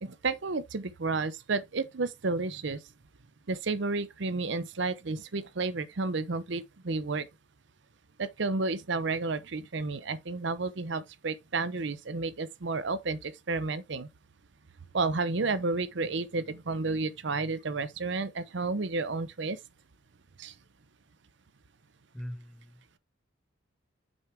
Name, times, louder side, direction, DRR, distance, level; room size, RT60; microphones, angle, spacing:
voice 1, 0.0-2.8 3.5-7.3 8.2-14.1 14.9-19.6 20.4-20.5, right 3 dB, 65° right, 0.7 m, -31 dB
voice 2, 22.1-23.0, equal, ahead, 1.2 m, -42 dB
6.3 x 4.5 x 3.5 m
head